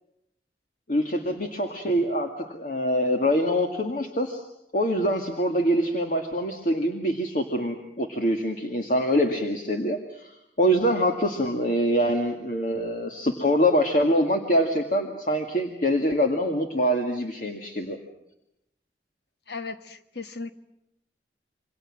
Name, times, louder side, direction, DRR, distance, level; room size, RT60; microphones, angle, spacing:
voice 1, 0.9-4.4 4.7-18.0, equal, 50° left, 3 dB, 2.0 m, -24 dB
voice 2, 19.5-20.5, left 4 dB, 75° left, 8 dB, 1.5 m, -36 dB
28.0 x 25.0 x 7.5 m, 0.82 s
head